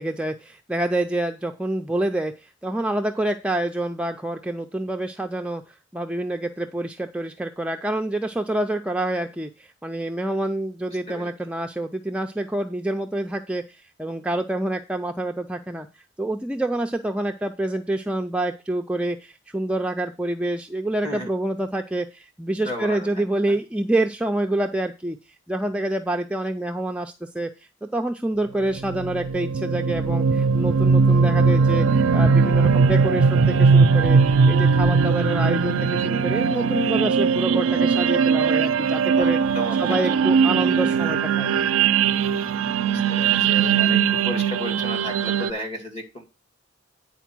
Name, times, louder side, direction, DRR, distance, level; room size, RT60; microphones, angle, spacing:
voice 1, 0.0-5.6 5.9-15.9 16.2-25.2 25.5-27.5 27.8-39.4 39.8-41.5, right 1 dB, 5° right, 4 dB, 0.4 m, -27 dB
voice 2, 22.6-23.5 39.2-39.8 40.1-40.3 43.1-46.2, left 1 dB, 30° left, 3 dB, 2.4 m, -34 dB
sound 1, 28.8-45.5, right 5 dB, 85° right, 0.4 m, -19 dB
9.2 x 4.4 x 6.0 m, 0.28 s
head